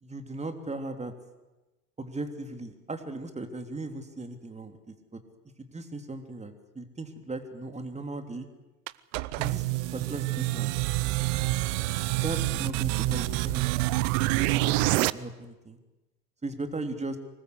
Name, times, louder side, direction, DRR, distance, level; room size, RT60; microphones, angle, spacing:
voice 1, 0.0-1.1 2.0-4.9 5.6-8.5 9.4-9.6 9.9-10.7 12.1-14.0 14.4-15.8 16.4-17.2, right 2 dB, 15° right, 6 dB, 3.3 m, -37 dB
sound 1, 8.9-15.1, right 20 dB, 55° right, 0.8 m, -27 dB
24.5 x 20.5 x 8.3 m, 1.1 s
figure-of-eight pair, 75°, 47 cm